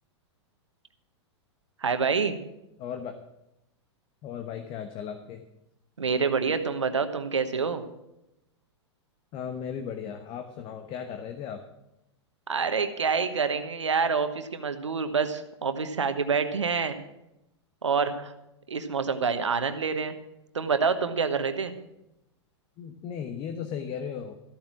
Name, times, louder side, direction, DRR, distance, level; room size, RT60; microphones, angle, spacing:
voice 1, 1.8-2.4 6.0-7.9 12.5-17.0 17.8-18.3 18.7-20.1 20.5-21.7, right 5 dB, 85° right, 9 dB, 1.2 m, -27 dB
voice 2, 2.8-3.2 4.2-5.4 9.3-11.6 22.8-24.3, left 7 dB, 35° left, 7 dB, 1.1 m, -36 dB
13.5 x 8.9 x 6.1 m, 0.89 s
hypercardioid pair, 105°, 15 cm